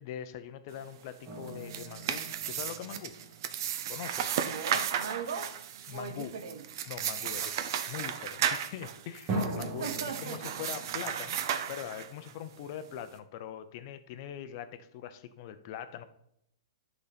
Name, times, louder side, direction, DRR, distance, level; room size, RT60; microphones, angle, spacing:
voice 1, 0.0-3.2 3.9-4.4 4.7-4.8 5.9-6.4 6.9-9.9 10.2-11.4 11.7-16.0, left 9 dB, 45° left, 11 dB, 0.6 m, -42 dB
sound 1, 1.3-4.4 9.3-12.9, right 2 dB, 35° right, 1.8 m, -40 dB
sound 2, 1.4-12.3, right 9 dB, 55° right, 0.6 m, -35 dB
voice 2, 4.4-5.6 5.9-6.6 9.6-10.4, right 6 dB, 70° right, 8 dB, 1.0 m, -39 dB
8.6 x 4.0 x 5.1 m, 0.76 s
hypercardioid pair, 145°, 3 cm